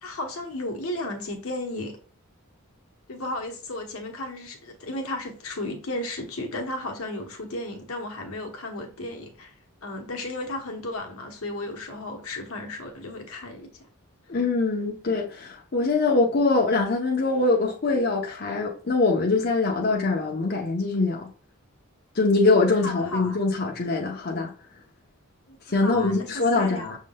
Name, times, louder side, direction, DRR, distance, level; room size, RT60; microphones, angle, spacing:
voice 1, 0.0-2.0 3.1-9.5 9.8-13.9 22.8-23.4 25.5-27.0, left 1 dB, 80° left, 1.1 m, -34 dB
voice 2, 14.3-21.3 22.1-24.5 25.7-26.8, left 3 dB, 50° left, 0.7 m, -23 dB
6.3 x 3.7 x 2.3 m
head